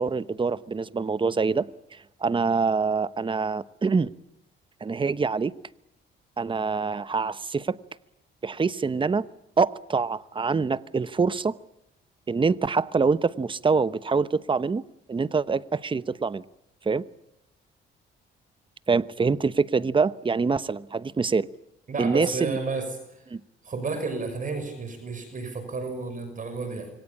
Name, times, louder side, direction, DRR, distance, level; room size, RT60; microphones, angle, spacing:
voice 1, 0.0-1.7 2.2-4.1 4.8-5.5 6.4-7.8 8.4-9.3 9.6-11.6 12.3-14.8 15.1-16.4 16.9-17.0 18.9-21.5 22.0-22.6 23.3-23.4, right 4 dB, 25° right, 1.0 m, -25 dB
voice 2, 21.9-23.2 23.6-26.9, right 4 dB, 40° right, 6.2 m, -32 dB
27.0 x 24.5 x 8.6 m
cardioid pair, 90°, 20 cm